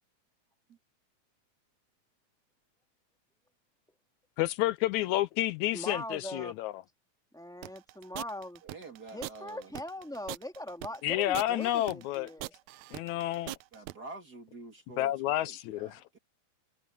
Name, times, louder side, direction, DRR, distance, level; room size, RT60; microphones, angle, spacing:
voice 1, 4.4-6.8 11.0-12.3 12.9-13.6 15.0-16.0, left 15 dB, 80° left, 1.9 m, -30 dB
voice 2, 5.7-6.5 7.3-8.6 9.1-12.5, left 1 dB, ahead, 2.1 m, -41 dB
sound 1, 7.6-13.9, right 18 dB, 80° right, 1.8 m, -41 dB
voice 3, 8.6-9.7 13.7-16.2, right 3 dB, 35° right, 2.7 m, -48 dB
omnidirectional pair, 3.4 m